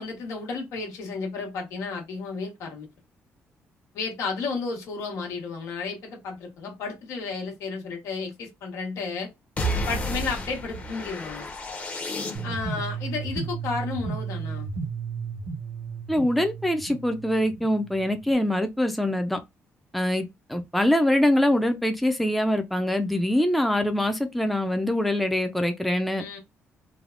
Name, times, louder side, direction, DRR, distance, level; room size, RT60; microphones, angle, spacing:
voice 1, 0.0-2.9 3.9-9.3 9.9-11.5 12.4-14.7 26.2-26.4, left 4 dB, 85° left, 1.2 m, -32 dB
sound 1, 9.6-12.8, equal, 25° left, 0.8 m, -31 dB
sound 2, 12.3-18.3, right 5 dB, 65° right, 0.8 m, -34 dB
voice 2, 16.1-19.4 19.9-20.2 20.5-26.2, left 1 dB, ahead, 0.4 m, -24 dB
3.3 x 2.2 x 2.5 m
cardioid pair, 120°, 5 cm